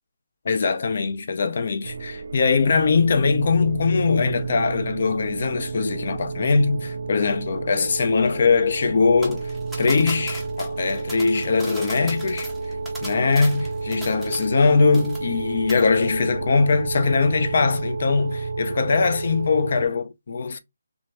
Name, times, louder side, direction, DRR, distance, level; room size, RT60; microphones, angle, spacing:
voice 1, 0.4-9.5 9.8-12.5 13.0-20.6, left 4 dB, 40° left, 0.6 m, -21 dB
sound 1, 1.8-19.8, right 4 dB, 60° right, 0.4 m, -31 dB
sound 2, 9.2-14.7 14.9-15.4 15.7-15.9, equal, ahead, 0.6 m, -38 dB
3.3 x 2.7 x 3.2 m
hypercardioid pair, 175°, 0 cm